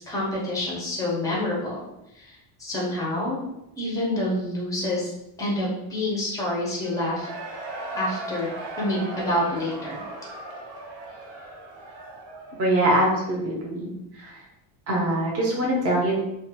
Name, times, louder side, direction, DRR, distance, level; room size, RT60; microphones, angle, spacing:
voice 1, 0.0-1.8 2.1-3.4 3.8-5.1 5.4-7.3 7.9-8.5 8.8-10.0, left 1 dB, 5° left, -4 dB, 0.5 m, -27 dB
Cheering / Crowd, 6.8-13.5, right 2 dB, 85° right, 0.8 m, -38 dB
voice 2, 12.6-14.4 14.9-16.1, right 1 dB, 30° right, -3 dB, 0.7 m, -23 dB
2.4 x 2.3 x 2.7 m, 0.87 s
cardioid pair, 160°, 48 cm